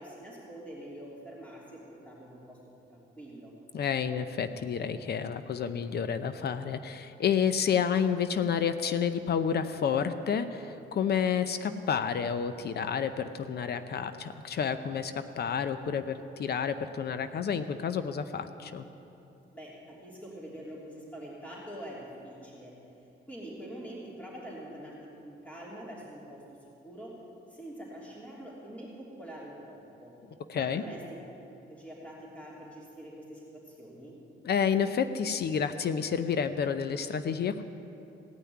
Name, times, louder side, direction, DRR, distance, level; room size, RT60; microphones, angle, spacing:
voice 1, 0.0-2.6 2.9-3.5 19.5-22.7 23.3-27.2 27.5-30.1 30.5-31.0 31.7-34.1, right 1 dB, 5° left, -6 dB, 3.1 m, -45 dB
voice 2, 3.7-18.9 30.5-30.8 34.4-37.6, left 7 dB, 55° left, 11 dB, 0.6 m, -30 dB
17.0 x 5.8 x 9.5 m, 2.9 s
cardioid pair, 90°, 20 cm